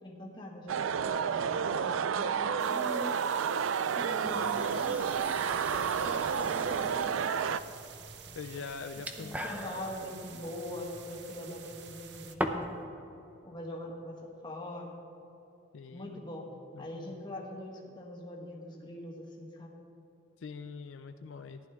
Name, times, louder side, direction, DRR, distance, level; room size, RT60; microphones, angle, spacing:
voice 1, 0.0-3.2 3.4-3.6 3.9-5.4 6.0-7.1 8.9-12.7 13.4-14.9 15.9-16.4 16.8-19.7, left 1 dB, 20° left, -2 dB, 1.7 m, -42 dB
sound 1, 0.7-7.6, right 7 dB, 85° right, 0.4 m, -30 dB
sound 2, 2.6-12.4, right 8 dB, 60° right, 0.7 m, -50 dB
sound 3, 4.2-12.8, equal, 10° right, 0.6 m, -42 dB
voice 2, 8.3-9.4 15.7-16.2 16.7-17.2 20.4-21.6, left 5 dB, 75° left, 8 dB, 0.4 m, -43 dB
15.0 x 10.5 x 3.5 m, 3.0 s
head